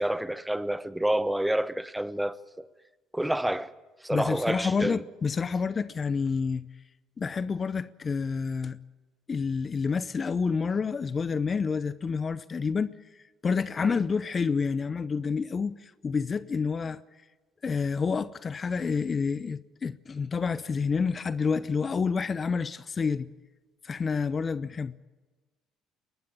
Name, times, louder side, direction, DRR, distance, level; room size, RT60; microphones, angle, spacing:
voice 1, 0.0-2.7 3.1-3.7 4.0-5.0, right 1 dB, 5° right, 1.1 m, -28 dB
voice 2, 4.1-6.7 7.2-8.8 9.3-12.9 13.4-17.0 17.6-23.3 23.8-24.9, left 5 dB, 35° left, 0.7 m, -28 dB
23.0 x 18.5 x 8.9 m
hypercardioid pair, 60°, 0 cm